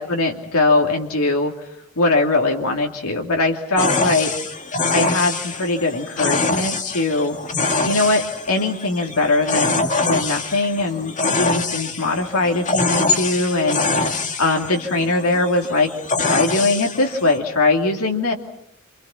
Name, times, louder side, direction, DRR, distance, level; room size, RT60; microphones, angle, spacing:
voice 1, 0.0-1.5 2.0-4.3 4.9-7.4 7.8-15.9 16.2-18.3, left 2 dB, 85° left, 1 dB, 2.8 m, -21 dB
sound 1, 3.8-17.4, left 3 dB, 35° left, 2.3 m, -24 dB
28.0 x 27.5 x 5.8 m, 0.69 s
head